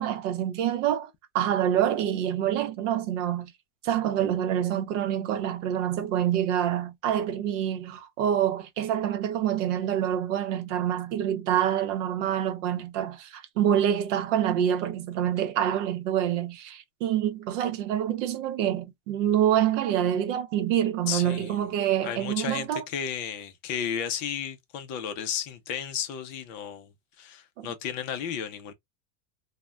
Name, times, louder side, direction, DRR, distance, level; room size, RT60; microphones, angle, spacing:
voice 1, 0.0-3.5 3.8-22.8 27.6-27.7, right 10 dB, 75° right, 0.7 m, -26 dB
voice 2, 21.1-21.6 22.0-26.9 27.2-28.7, left 8 dB, 35° left, 0.4 m, -33 dB
3.2 x 2.1 x 2.3 m
supercardioid pair, 170°, 38 cm